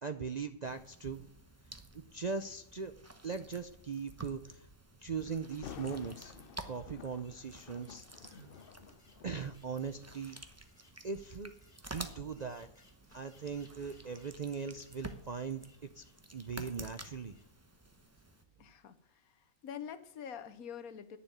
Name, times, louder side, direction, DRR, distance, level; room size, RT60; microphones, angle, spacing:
voice 1, 0.0-1.3 1.9-2.9 3.2-4.7 5.0-8.4 9.2-10.4 11.0-11.5 11.9-12.7 13.1-15.7 15.9-16.0 16.3-17.3, right 5 dB, 55° right, 8 dB, 0.5 m, -40 dB
sound 1, 0.6-18.4, right 2 dB, 10° right, 0.9 m, -52 dB
Thunder, 5.5-10.5 11.1-11.4 12.0-14.8 15.2-15.3, left 8 dB, 55° left, 0.7 m, -52 dB
sound 2, 5.9-17.5, left 1 dB, 25° left, 2.5 m, -66 dB
voice 2, 18.6-21.2, left 8 dB, 80° left, 12 dB, 1.4 m, -46 dB
10.5 x 7.0 x 9.1 m, 0.75 s
omnidirectional pair, 1.5 m